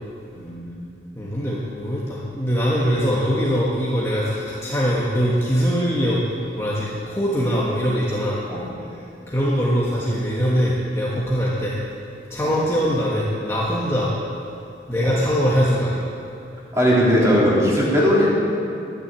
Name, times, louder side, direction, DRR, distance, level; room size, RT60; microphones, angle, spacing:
voice 1, 0.3-0.8 8.5-8.6 12.4-12.5 15.0-15.1 16.7-18.3, equal, 15° right, -6 dB, 3.6 m, -19 dB
voice 2, 1.1-6.2 6.5-8.4 9.3-11.8 12.3-14.1 14.9-16.0, equal, 15° left, -6 dB, 1.4 m, -22 dB
12.0 x 10.0 x 8.9 m, 2.6 s
head